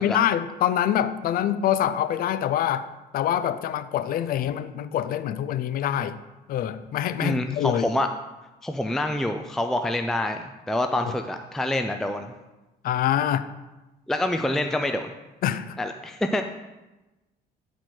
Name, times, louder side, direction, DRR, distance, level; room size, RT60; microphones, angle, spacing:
voice 1, 0.0-2.9 3.1-6.2 6.5-7.9 12.8-13.4 15.4-15.8, left 10 dB, 60° left, 13 dB, 0.5 m, -25 dB
voice 2, 7.2-8.1 8.6-12.3 14.1-15.1 15.8-16.4, left 1 dB, ahead, 6 dB, 0.4 m, -26 dB
9.4 x 4.6 x 4.4 m, 1.1 s
cardioid pair, 110°, 17 cm